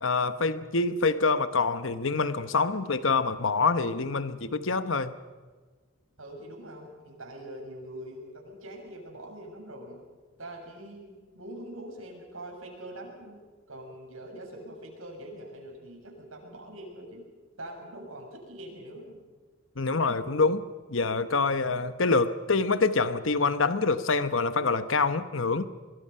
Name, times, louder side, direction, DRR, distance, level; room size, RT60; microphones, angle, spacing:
voice 1, 0.0-5.1 19.8-25.7, left 4 dB, 65° left, 1.1 m, -26 dB
voice 2, 6.2-10.0 10.4-13.4 13.7-17.2 17.6-19.2, right 1 dB, 80° right, 6.9 m, -43 dB
24.0 x 23.0 x 5.7 m
head